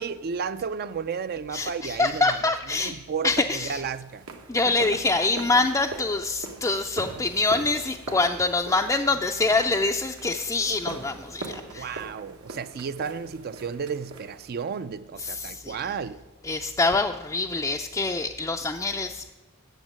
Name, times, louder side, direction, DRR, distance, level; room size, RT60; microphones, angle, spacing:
voice 1, 0.0-4.3 4.6-5.0 5.4-5.5 11.7-16.2, right 6 dB, 45° right, 0.4 m, -33 dB
voice 2, 1.5-2.9 3.2-3.8 4.5-11.9 15.2-15.8 16.4-19.3, left 3 dB, 15° left, 0.4 m, -25 dB
sound 1, 3.7-14.8, right 2 dB, 80° right, 1.3 m, -41 dB
9.0 x 7.4 x 8.8 m
head